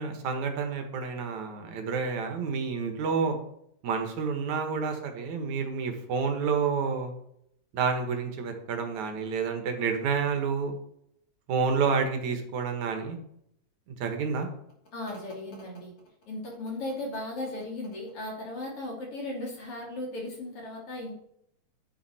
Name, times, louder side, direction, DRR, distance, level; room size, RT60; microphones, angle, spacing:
voice 1, 0.0-3.4 3.8-7.1 7.7-10.7 11.5-13.2 13.9-14.5, right 5 dB, 80° right, 5 dB, 2.8 m, -29 dB
voice 2, 14.9-15.9 16.3-21.1, left 1 dB, 50° left, -1 dB, 3.7 m, -36 dB
10.0 x 9.6 x 4.3 m, 0.72 s
omnidirectional pair, 3.3 m